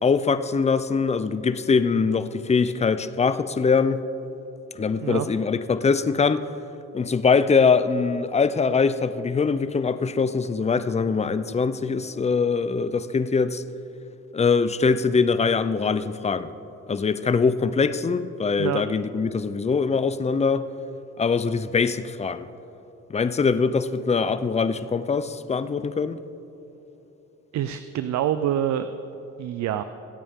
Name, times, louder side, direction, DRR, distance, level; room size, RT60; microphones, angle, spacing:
voice 1, 0.0-4.0 4.7-6.5 6.9-13.6 14.3-16.5 16.9-20.7 21.2-22.5 23.1-26.2, left 5 dB, 20° left, 13 dB, 0.5 m, -22 dB
voice 2, 27.5-28.9 29.4-29.8, right 11 dB, 65° right, 11 dB, 0.5 m, -26 dB
25.5 x 8.5 x 3.7 m, 3.0 s
cardioid pair, 90°, 30 cm